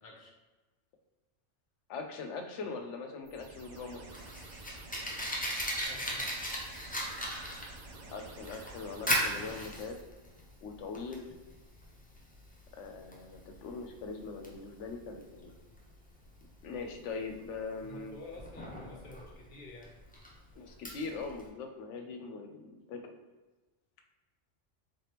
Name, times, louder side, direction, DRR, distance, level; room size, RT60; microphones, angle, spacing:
voice 1, 0.0-0.3 5.9-6.5 17.8-19.9, left 2 dB, 50° left, 0 dB, 0.9 m, -50 dB
voice 2, 1.9-4.0 8.1-10.0 10.6-11.3 12.7-15.5 16.6-18.1 20.6-23.2, left 4 dB, 80° left, 5 dB, 0.9 m, -41 dB
sound 1, 3.2-10.0, right 2 dB, 55° right, 0.5 m, -50 dB
Fire, 3.8-21.5, equal, 15° left, 0.3 m, -39 dB
3.8 x 3.3 x 2.9 m, 1.2 s
omnidirectional pair, 1.2 m